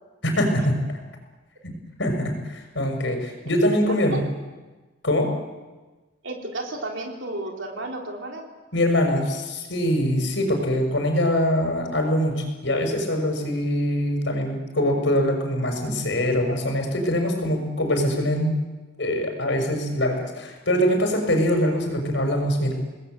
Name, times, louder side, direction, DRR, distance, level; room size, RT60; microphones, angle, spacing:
voice 1, 0.2-0.8 1.6-1.7 2.0-4.2 5.0-5.3 8.7-18.5 19.0-22.7, equal, 70° left, 4 dB, 6.3 m, -23 dB
voice 2, 3.9-4.2 6.2-8.4, right 2 dB, 75° right, 0 dB, 3.6 m, -33 dB
28.0 x 20.0 x 8.1 m, 1.2 s
head